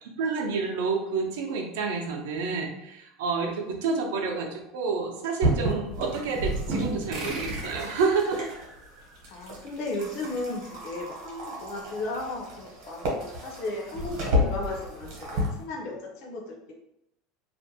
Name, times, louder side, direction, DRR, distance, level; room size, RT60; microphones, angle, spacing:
voice 1, 0.0-8.5, right 4 dB, 90° right, 1 dB, 0.5 m, -29 dB
sound 1, 5.4-8.7 9.2-15.6, equal, 55° right, 0.8 m, -31 dB
sound 2, 7.1-10.2, right 2 dB, 35° right, 0.5 m, -40 dB
voice 2, 9.3-16.7, left 2 dB, 50° left, -1 dB, 0.5 m, -35 dB
2.5 x 2.1 x 2.7 m, 0.83 s
cardioid pair, 170°, 0 cm